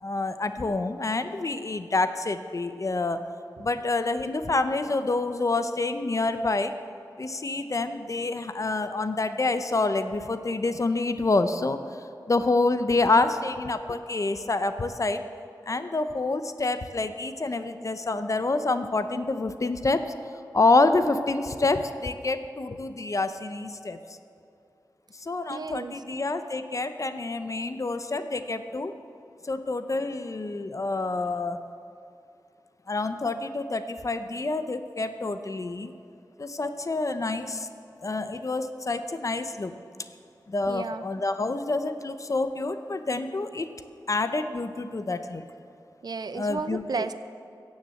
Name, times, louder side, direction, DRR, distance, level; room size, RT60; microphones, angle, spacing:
voice 1, 0.0-3.2 3.6-6.7 7.2-11.8 12.3-15.2 15.7-20.0 20.5-24.0 25.2-28.9 29.4-31.6 32.9-35.9 36.4-37.7 38.0-39.7 40.5-43.7 44.1-45.4 46.3-47.0, left 3 dB, 45° left, 10 dB, 0.7 m, -27 dB
voice 2, 25.5-25.9 40.7-41.1 46.0-47.1, right 4 dB, 65° right, 12 dB, 0.5 m, -33 dB
15.5 x 7.2 x 7.7 m, 2.5 s
wide cardioid pair, 75°, 8 cm